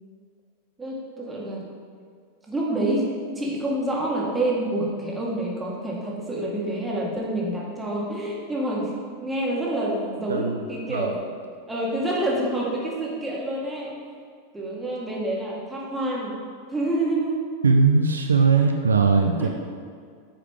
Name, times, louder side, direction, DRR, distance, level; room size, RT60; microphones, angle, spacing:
voice 1, 0.8-1.6 2.5-3.1 3.4-11.3 11.7-13.9 14.5-16.3 16.7-17.4 19.4-19.5, right 1 dB, 10° right, -4 dB, 1.9 m, -27 dB
voice 2, 10.3-10.6 10.9-11.1 17.6-19.5, right 4 dB, 75° right, 4 dB, 0.5 m, -19 dB
8.9 x 5.0 x 4.8 m, 2.1 s
figure-of-eight pair, 90°, 0 cm